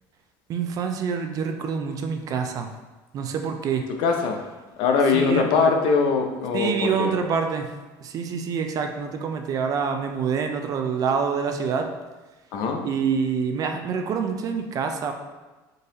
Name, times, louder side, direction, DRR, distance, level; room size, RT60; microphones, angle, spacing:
voice 1, 0.5-2.7 3.1-3.9 5.1-5.7 6.5-7.7 8.0-11.9 12.8-15.1, right 6 dB, 45° right, 6 dB, 0.4 m, -26 dB
voice 2, 4.0-4.4 4.8-7.1 12.5-12.9, left 5 dB, 70° left, 3 dB, 0.6 m, -22 dB
3.9 x 2.6 x 3.8 m, 1.2 s
supercardioid pair, 115°, 9 cm